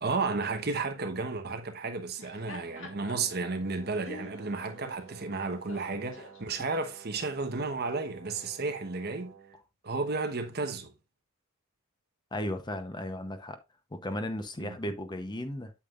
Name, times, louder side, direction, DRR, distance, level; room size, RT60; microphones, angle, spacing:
voice 1, 0.0-9.3 9.8-10.9 14.6-14.8, right 3 dB, 50° right, 1.2 m, -33 dB
Laughter, 2.0-7.3, left 3 dB, 65° left, 1.9 m, -50 dB
Brass instrument, 2.6-9.6, right 7 dB, 70° right, 1.9 m, -52 dB
voice 2, 12.3-13.6 13.9-15.7, left 1 dB, 20° left, 0.8 m, -35 dB
8.5 x 7.5 x 2.5 m
head